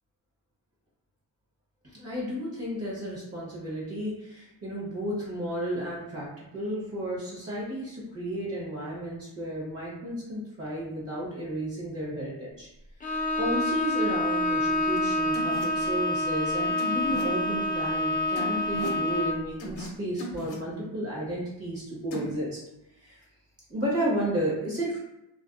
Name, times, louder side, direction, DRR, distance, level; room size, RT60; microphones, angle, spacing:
voice 1, 1.9-12.7 13.0-22.6 23.0-23.2 23.7-25.0, right 1 dB, 30° right, -5 dB, 0.9 m, -33 dB
Bowed string instrument, 13.0-19.5, left 1 dB, 20° left, 0.3 m, -27 dB
sound 1, 14.9-15.0 15.3-15.6 16.8-17.2 18.3-19.0 19.6-19.9 20.2-20.6 22.1-22.3, left 2 dB, 70° left, 0.7 m, -38 dB
2.5 x 2.3 x 2.4 m, 0.89 s
cardioid pair, 115°, 47 cm